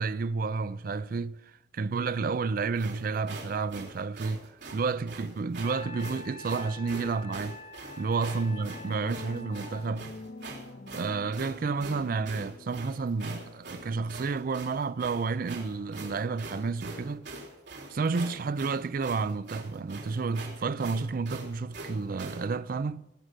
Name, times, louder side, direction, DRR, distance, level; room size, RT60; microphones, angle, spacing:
voice 1, 0.0-1.4 1.7-7.6 8.0-10.1 10.9-17.3 17.9-23.0, right 4 dB, 55° right, 0.4 m, -31 dB
sound 1, 2.8-22.5, right 2 dB, 85° right, 3.6 m, -43 dB
Wind instrument woodwind instrument, 5.6-9.9, left 2 dB, 40° left, 1.0 m, -46 dB
sound 2, 8.4-13.0, left 2 dB, 60° left, 0.7 m, -46 dB
18.5 x 6.5 x 8.0 m
head